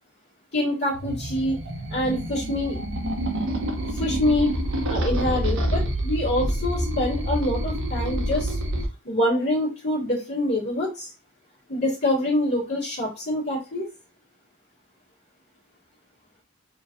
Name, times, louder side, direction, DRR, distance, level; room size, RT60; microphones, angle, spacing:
voice 1, 0.5-1.6 1.9-2.8 3.9-4.5 4.9-8.6 9.0-11.1 11.7-13.9, left 1 dB, 50° left, -10 dB, 1.9 m, -25 dB
sound 1, 0.9-8.8, right 1 dB, 60° right, 0.9 m, -27 dB
4.3 x 3.1 x 2.5 m, 0.32 s
head